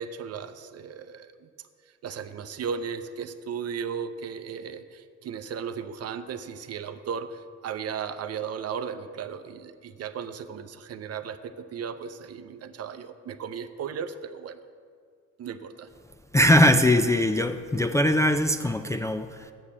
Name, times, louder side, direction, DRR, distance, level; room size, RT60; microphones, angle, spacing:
voice 1, 0.0-1.5 2.0-14.6 15.4-15.9, right 7 dB, 55° right, 0.6 m, -36 dB
voice 2, 16.3-19.5, left 1 dB, 10° left, 0.3 m, -21 dB
7.2 x 6.7 x 7.3 m
cardioid pair, 90°, 30 cm